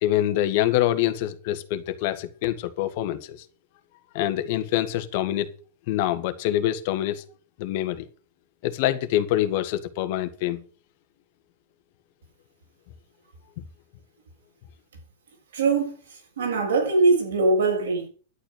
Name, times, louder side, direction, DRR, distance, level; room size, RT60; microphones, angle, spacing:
voice 1, 0.0-3.4 4.1-5.5 5.9-7.2 7.6-8.1 8.6-10.6, left 13 dB, 55° left, 1.8 m, -25 dB
voice 2, 15.5-15.9 16.4-18.1, right 3 dB, 80° right, 7.2 m, -21 dB
11.5 x 9.0 x 6.7 m
hypercardioid pair, 120°, 0 cm